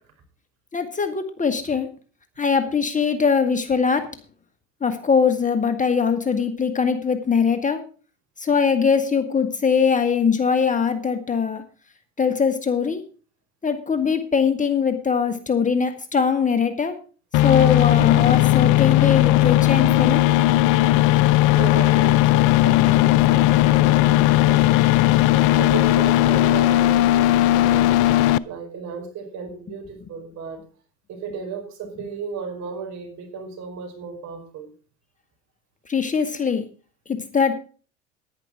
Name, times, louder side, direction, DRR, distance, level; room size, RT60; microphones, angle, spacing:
voice 1, 0.7-1.9 2.4-4.1 4.8-7.8 8.4-11.6 12.2-13.0 13.6-17.0 17.4-20.2 35.9-36.6 37.1-37.5, left 6 dB, 20° left, 8 dB, 1.6 m, -21 dB
sound 1, 17.3-28.4, left 16 dB, 55° left, 0.6 m, -17 dB
voice 2, 21.6-24.9 25.5-27.9 28.5-30.6 31.1-34.7, right 5 dB, 50° right, 3 dB, 5.2 m, -34 dB
10.5 x 10.5 x 4.9 m, 0.38 s
hypercardioid pair, 80°, 36 cm